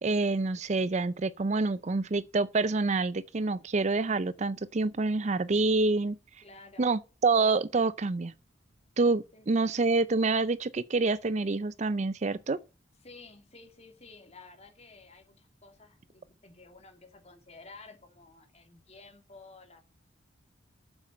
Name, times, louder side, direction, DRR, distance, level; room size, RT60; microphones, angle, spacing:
voice 1, 0.0-6.2 6.8-8.3 9.0-12.6, right 3 dB, 35° right, 0.5 m, -27 dB
voice 2, 6.4-6.9 9.3-9.8 13.0-19.8, left 3 dB, 35° left, 2.8 m, -53 dB
8.7 x 7.6 x 7.5 m
head